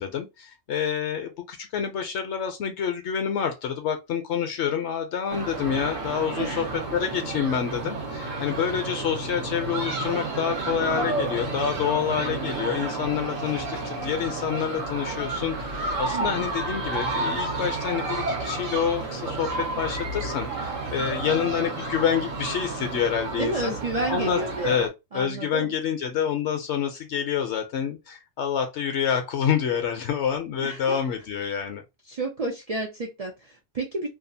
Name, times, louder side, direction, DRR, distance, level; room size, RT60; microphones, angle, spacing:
voice 1, 0.0-6.6 6.9-23.8 24.1-24.9 25.1-31.8, left 8 dB, 70° left, 0.8 m, -27 dB
sound 1, 5.3-24.9, right 2 dB, 85° right, 1.2 m, -31 dB
voice 2, 6.4-6.7 16.1-16.5 23.4-24.7 25.1-25.7 30.6-31.0 32.1-34.1, right 2 dB, 65° right, 0.3 m, -31 dB
sound 2, 9.9-20.5, right 4 dB, 50° right, 0.8 m, -43 dB
2.7 x 2.3 x 2.6 m
omnidirectional pair, 1.3 m